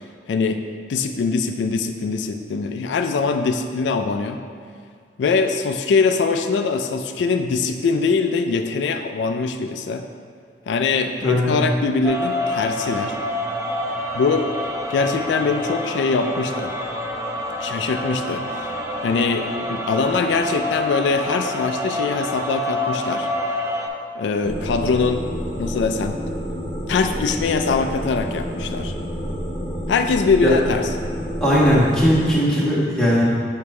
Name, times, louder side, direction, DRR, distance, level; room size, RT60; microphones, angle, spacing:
voice 1, 0.3-0.6 0.9-4.4 5.2-10.0 10.7-13.2 14.1-14.5 14.9-16.7 17.6-18.4 19.0-23.3 24.2-25.3 25.6-26.2 26.9-28.9 29.9-30.9, left 4 dB, 85° left, 6 dB, 0.3 m, -22 dB
voice 2, 11.2-11.5 30.4-30.5 31.4-33.2, equal, 5° left, -9 dB, 1.3 m, -18 dB
sound 1, 12.0-23.9, left 1 dB, 15° right, 0.5 m, -27 dB
sound 2, 24.4-32.3, equal, 30° left, 1.5 m, -29 dB
6.8 x 4.6 x 3.2 m, 2.1 s
head